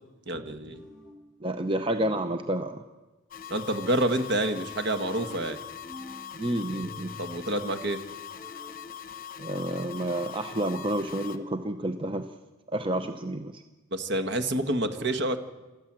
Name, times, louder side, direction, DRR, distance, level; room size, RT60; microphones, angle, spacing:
voice 1, 0.3-0.8 3.5-5.6 7.2-8.0 13.9-15.4, right 1 dB, 55° right, 8 dB, 1.6 m, -28 dB
sound 1, 0.7-1.3 1.9-2.5 5.1-6.3 6.7-7.4 8.3-8.8 11.1-11.7 12.7-13.3, left 1 dB, 5° left, 3.0 m, -47 dB
voice 2, 1.4-2.8 6.3-7.1 9.4-12.3 12.7-13.6, right 1 dB, 25° right, 8 dB, 0.7 m, -30 dB
sound 2, 3.3-11.4, left 8 dB, 45° left, 1.1 m, -42 dB
28.0 x 13.5 x 7.6 m, 1.2 s
head